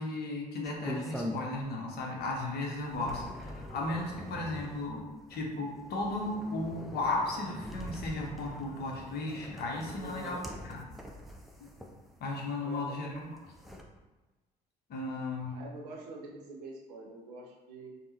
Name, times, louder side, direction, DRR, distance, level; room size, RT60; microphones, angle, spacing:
voice 1, 0.0-10.8 12.2-13.3 14.9-15.6, left 2 dB, 50° left, -1 dB, 0.8 m, -35 dB
sound 1, 0.6-1.8 2.2-12.4 13.1-13.8, equal, ahead, 0.4 m, -44 dB
voice 2, 10.0-10.5 12.6-13.0 15.5-17.9, right 2 dB, 75° right, -1 dB, 0.6 m, -45 dB
3.4 x 2.0 x 2.8 m, 1.2 s
figure-of-eight pair, 50°, 21 cm